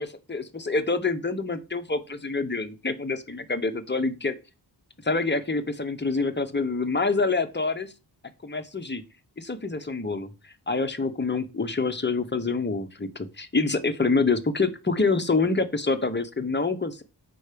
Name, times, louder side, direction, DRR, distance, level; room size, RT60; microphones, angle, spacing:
voice 1, 0.0-4.3 5.0-7.9 8.4-9.0 9.4-10.3 10.7-17.0, left 3 dB, 25° left, 7 dB, 1.0 m, -26 dB
6.2 x 4.6 x 5.1 m, 0.29 s
wide cardioid pair, 80°, 45 cm